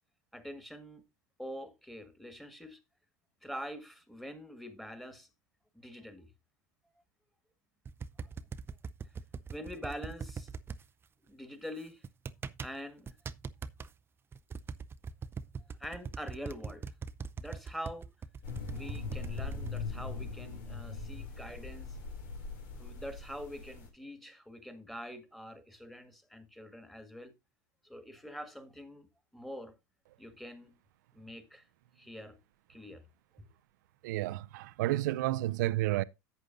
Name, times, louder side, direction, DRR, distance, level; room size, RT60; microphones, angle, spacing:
voice 1, 0.3-1.0 1.4-2.8 3.4-5.3 5.7-6.3 8.2-8.3 9.5-10.5 11.3-12.0 12.6-13.2 15.6-16.9 17.4-18.1 18.6-22.0 22.8-27.3 27.8-29.1 29.3-29.8 30.2-30.8 31.1-31.6 32.0-32.4 32.7-33.0 33.4-33.5, equal, ahead, 1.7 m, -45 dB
sound 1, 7.9-10.8 12.0-12.7 13.1-13.9 14.3-19.8, right 5 dB, 25° right, 0.5 m, -41 dB
sound 2, 18.4-23.9, left 4 dB, 75° left, 2.6 m, -41 dB
voice 2, 34.0-36.0, right 16 dB, 75° right, 0.5 m, -31 dB
11.0 x 8.0 x 2.5 m
hypercardioid pair, 90°, 10 cm